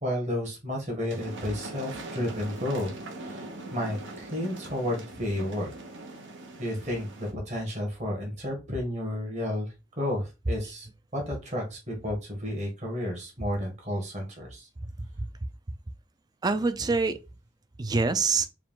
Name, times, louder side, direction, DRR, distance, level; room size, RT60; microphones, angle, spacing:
voice 1, 0.0-2.9 3.2-5.7 6.6-9.7 10.0-10.9 11.1-14.7, left 1 dB, 35° right, 1.5 m, -32 dB
sound 1, 1.1-7.3, right 2 dB, 70° right, 0.9 m, -41 dB
voice 2, 14.8-15.3 16.4-17.2 17.8-18.5, right 4 dB, 20° right, 0.3 m, -26 dB
4.5 x 2.4 x 3.6 m
head